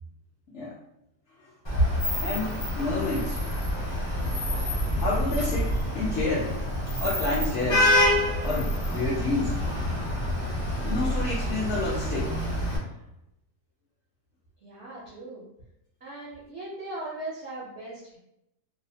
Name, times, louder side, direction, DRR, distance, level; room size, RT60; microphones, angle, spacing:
Vehicle horn car horn honking / Traffic noise roadway noise, 1.6-12.8, left 1 dB, 25° left, 0.5 m, -27 dB
voice 1, 1.8-3.4 4.2-4.4 5.0-6.5 7.0-7.9 8.4-9.6 10.8-12.3, left 2 dB, 70° left, -6 dB, 0.7 m, -29 dB
voice 2, 14.6-15.5 16.0-18.2, right 2 dB, 65° right, -6 dB, 0.6 m, -39 dB
2.7 x 2.0 x 2.6 m, 0.81 s
omnidirectional pair, 1.7 m